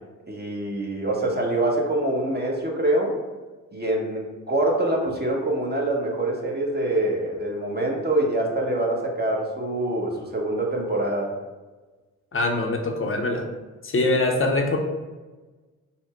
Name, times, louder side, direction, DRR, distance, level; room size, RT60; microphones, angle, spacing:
voice 1, 0.3-3.2 3.7-11.3, right 1 dB, 25° right, -1 dB, 1.1 m, -25 dB
voice 2, 12.3-13.5 13.8-14.8, left 2 dB, 30° left, 2 dB, 0.8 m, -23 dB
4.2 x 2.1 x 4.5 m, 1.3 s
hypercardioid pair, 40°, 40 cm